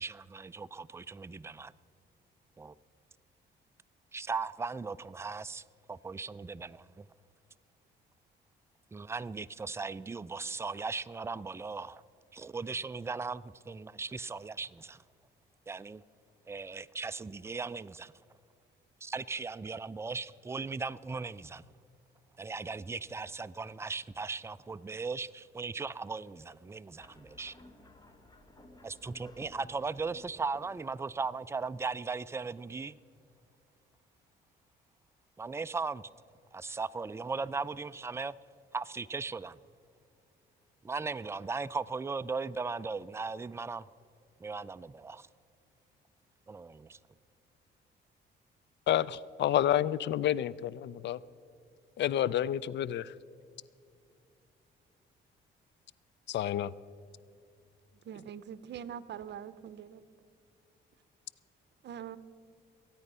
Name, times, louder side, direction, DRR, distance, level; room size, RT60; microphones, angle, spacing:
voice 1, 0.0-1.7 2.6-2.7 4.1-7.1 8.9-12.0 12.3-15.0 15.7-16.0 16.5-18.1 19.0-21.6 22.4-27.6 28.8-33.0 35.4-36.0 36.5-38.4 38.7-39.6 40.8-43.9 44.4-45.3 46.5-47.0, right 4 dB, 15° right, 0.4 m, -38 dB
sound 1, 27.0-32.2, left 1 dB, 20° left, 1.6 m, -57 dB
voice 2, 48.9-51.2 52.0-53.1 56.3-56.7, left 11 dB, 65° left, 0.4 m, -29 dB
voice 3, 58.0-60.0 61.8-62.2, right 9 dB, 60° right, 0.8 m, -43 dB
22.5 x 9.2 x 5.5 m
cardioid pair, 90°, 20 cm